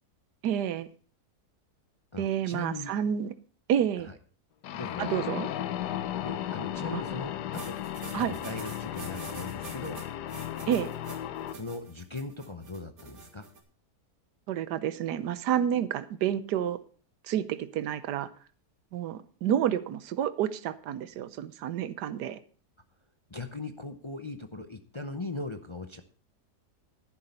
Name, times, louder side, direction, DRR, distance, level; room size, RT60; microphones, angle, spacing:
voice 1, 0.4-0.9 2.2-3.3 3.7-4.1 5.0-5.5 6.9-7.0 8.1-8.4 10.7-10.9 14.5-16.8 17.2-18.3 18.9-22.4, right 10 dB, 85° right, 13 dB, 1.4 m, -29 dB
voice 2, 2.1-2.9 4.0-4.2 4.7-5.2 6.2-7.8 8.2-10.0 11.5-13.5 23.3-26.0, left 3 dB, 40° left, 7 dB, 0.4 m, -39 dB
sound 1, 4.6-11.6, left 11 dB, 85° left, 1.3 m, -35 dB
sound 2, 7.5-13.6, right 4 dB, 60° right, 2.3 m, -45 dB
11.5 x 11.0 x 4.2 m, 0.40 s
omnidirectional pair, 1.7 m